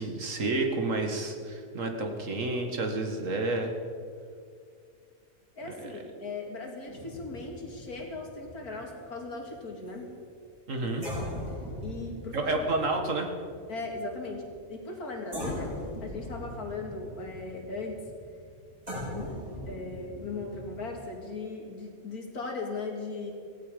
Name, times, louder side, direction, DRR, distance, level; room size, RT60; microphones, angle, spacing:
voice 1, 0.0-3.7 5.6-6.0 10.7-11.1 12.3-13.3, right 2 dB, 60° right, 4 dB, 2.0 m, -30 dB
voice 2, 5.6-10.1 11.5-11.6 11.8-12.6 13.7-18.0 19.1-19.4 19.7-23.3, left 3 dB, 85° left, 1 dB, 2.9 m, -38 dB
sound 1, 6.9-10.1 10.5-10.6 11.0-15.0 15.3-21.0, left 1 dB, 25° right, 4.9 m, -40 dB
16.5 x 16.5 x 5.2 m, 2.2 s
omnidirectional pair, 1.5 m